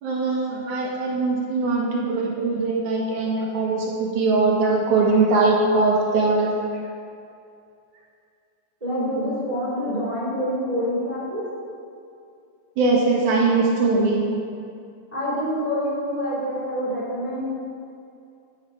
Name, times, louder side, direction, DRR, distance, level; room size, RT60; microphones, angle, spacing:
voice 1, 0.0-6.5 12.8-14.2, right 3 dB, 80° right, -3 dB, 3.1 m, -21 dB
voice 2, 8.8-11.4 15.1-17.6, equal, 15° right, -8 dB, 2.5 m, -26 dB
10.5 x 9.4 x 4.9 m, 2.5 s
omnidirectional pair, 3.5 m